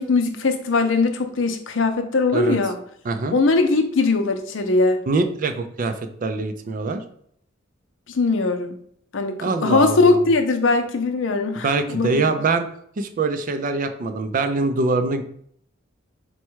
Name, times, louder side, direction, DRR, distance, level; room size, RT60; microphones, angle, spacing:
voice 1, 0.0-2.8 3.3-5.0 8.1-8.8 9.1-12.4, left 3 dB, 80° left, 6 dB, 0.6 m, -20 dB
voice 2, 3.0-3.4 5.1-7.0 9.4-10.1 11.6-12.7 13.0-15.2, right 3 dB, 45° right, 8 dB, 0.4 m, -23 dB
4.2 x 2.3 x 4.5 m, 0.65 s
head